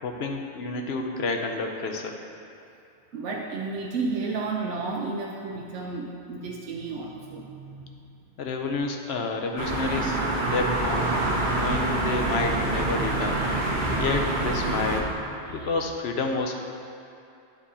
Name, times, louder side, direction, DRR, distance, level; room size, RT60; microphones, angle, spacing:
voice 1, 0.0-2.2 8.4-11.1 11.5-13.4 13.9-15.1 15.5-16.5, left 3 dB, 70° left, 3 dB, 0.9 m, -29 dB
voice 2, 3.1-7.9 15.4-15.8, right 3 dB, 90° right, -2 dB, 0.9 m, -32 dB
sound 1, 9.6-15.0, right 2 dB, 50° right, 0.9 m, -26 dB
9.7 x 3.7 x 4.2 m, 2.6 s
omnidirectional pair, 1.2 m